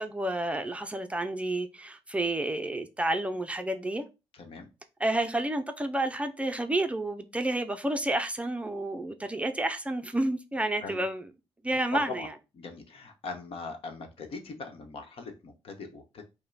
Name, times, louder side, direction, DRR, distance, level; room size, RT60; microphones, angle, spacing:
voice 1, 0.0-4.0 5.0-11.2 11.6-12.3, right 1 dB, 10° right, 0.5 m, -30 dB
voice 2, 4.3-4.7 10.8-11.0 11.9-12.3 12.5-16.2, left 4 dB, 65° left, 1.1 m, -40 dB
5.4 x 2.2 x 3.9 m
cardioid pair, 95°, 10 cm